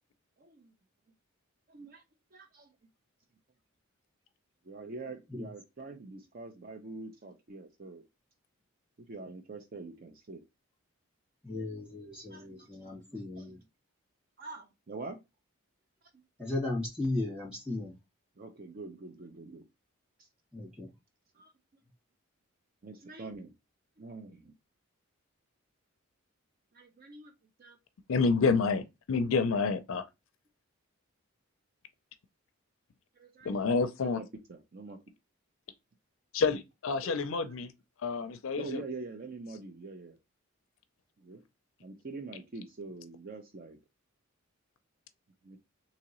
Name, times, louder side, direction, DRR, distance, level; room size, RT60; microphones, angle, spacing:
voice 1, 0.4-0.7 1.7-2.0 2.3-2.7 4.6-8.0 9.0-10.4 12.3-13.6 14.4-15.2 16.1-16.2 18.4-19.7 20.2-20.3 21.3-21.5 22.8-23.5 24.0-24.5 26.7-27.3 27.6-27.8 33.2-33.7 34.0-35.0 37.0-37.5 38.6-40.2 41.2-41.4 41.8-43.8 45.4-45.6, right 3 dB, 40° right, 0.5 m, -45 dB
voice 2, 11.4-13.6 16.4-17.9 20.5-20.9, left 2 dB, 5° right, 2.0 m, -36 dB
voice 3, 28.1-30.1 33.4-34.2 36.3-37.7 38.0-38.8, left 4 dB, 65° left, 0.4 m, -28 dB
3.7 x 2.9 x 3.0 m
head